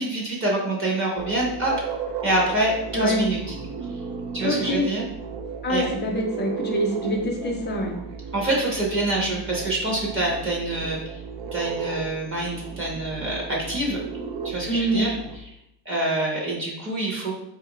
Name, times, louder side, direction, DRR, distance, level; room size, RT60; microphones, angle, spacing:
voice 1, 0.0-1.7 2.2-3.6 4.3-5.1 5.7-5.9 8.3-11.0 11.5-14.0 14.4-15.1 15.9-17.4, right 2 dB, 30° right, -3 dB, 0.7 m, -26 dB
sound 1, 1.2-15.4, right 5 dB, 75° right, 0.6 m, -34 dB
voice 2, 4.4-4.9 5.6-7.9 14.7-15.0, equal, 25° left, 0 dB, 0.5 m, -25 dB
4.2 x 2.4 x 2.9 m, 0.82 s
cardioid pair, 170°, 43 cm